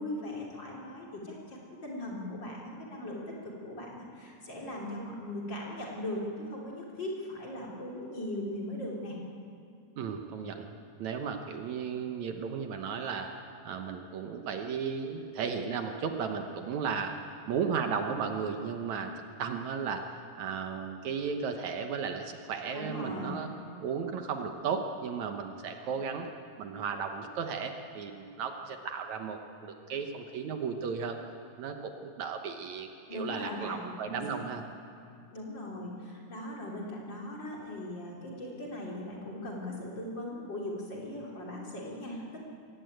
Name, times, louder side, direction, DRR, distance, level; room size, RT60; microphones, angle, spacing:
voice 1, 0.0-9.2 22.7-23.4 33.1-34.5 35.3-42.4, left 1 dB, 35° left, -3 dB, 3.9 m, -39 dB
voice 2, 10.0-10.7 11.0-13.3 13.7-17.1 17.5-19.1 19.4-23.5 23.8-26.3 26.6-31.2 31.6-34.6, right 6 dB, 70° right, 5 dB, 2.3 m, -35 dB
22.0 x 17.0 x 9.2 m, 2.4 s
omnidirectional pair, 3.7 m